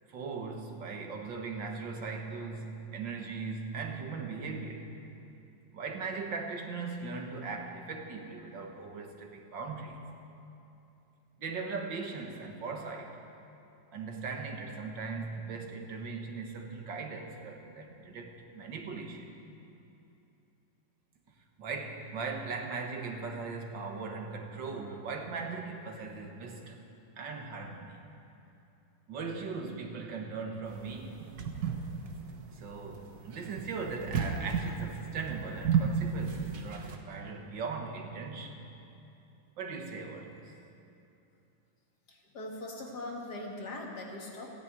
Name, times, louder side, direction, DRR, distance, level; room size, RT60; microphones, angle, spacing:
voice 1, 0.1-4.9 5.7-10.0 11.4-13.2 13.9-19.4 21.6-26.8 27.2-28.0 29.1-31.3 32.5-38.6 39.6-40.4, right 4 dB, 70° right, 3 dB, 2.0 m, -39 dB
sound 1, 30.7-37.0, right 6 dB, 55° right, 1.6 m, -33 dB
voice 2, 42.1-44.6, left 2 dB, 55° left, -1 dB, 2.4 m, -41 dB
15.5 x 9.9 x 8.9 m, 2.7 s
omnidirectional pair, 2.1 m